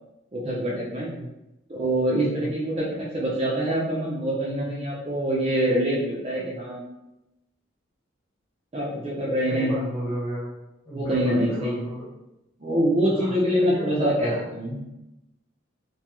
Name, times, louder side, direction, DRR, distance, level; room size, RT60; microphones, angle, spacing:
voice 1, 0.3-1.1 1.7-2.9 3.1-6.8 8.7-9.7 10.9-11.8 12.6-14.8, right 1 dB, 30° right, -5 dB, 0.4 m, -25 dB
voice 2, 9.5-10.5 10.8-12.1 13.1-14.6, equal, 20° left, -8 dB, 1.1 m, -34 dB
2.7 x 2.2 x 2.9 m, 0.93 s
head